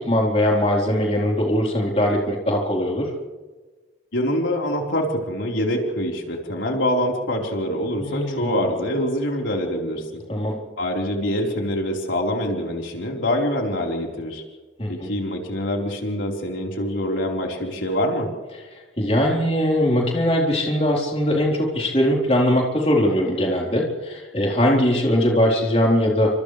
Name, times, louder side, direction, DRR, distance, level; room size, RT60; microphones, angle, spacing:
voice 1, 0.0-3.1 8.0-8.5 10.3-10.5 14.8-15.1 19.0-26.3, equal, 30° left, -2 dB, 4.1 m, -21 dB
voice 2, 4.1-10.2 10.8-14.4 14.9-18.3, left 1 dB, 80° left, 0 dB, 4.4 m, -25 dB
30.0 x 26.5 x 3.4 m, 1.3 s
head